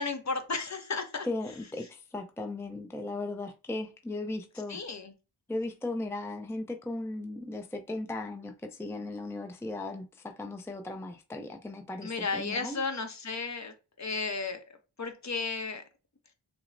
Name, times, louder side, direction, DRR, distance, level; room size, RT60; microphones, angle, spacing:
voice 1, 0.0-1.3 4.7-5.1 12.0-14.6 15.0-15.8, left 4 dB, 40° left, 0.8 m, -34 dB
voice 2, 1.2-4.8 5.5-12.8, left 2 dB, 5° left, 0.5 m, -37 dB
5.8 x 2.1 x 2.6 m
wide cardioid pair, 60°, 41 cm